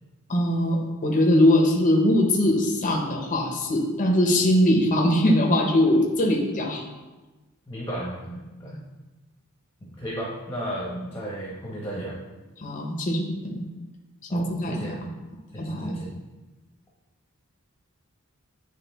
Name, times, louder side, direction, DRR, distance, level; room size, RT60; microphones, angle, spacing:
voice 1, 0.3-6.8 8.7-8.8 12.6-13.6 14.3-15.1 15.6-16.0, left 1 dB, 35° left, 0 dB, 0.8 m, -22 dB
voice 2, 7.7-8.8 9.8-12.2 14.3-15.1 15.5-16.1, right 1 dB, 15° left, -5 dB, 1.0 m, -34 dB
9.0 x 3.3 x 3.5 m, 1.1 s
head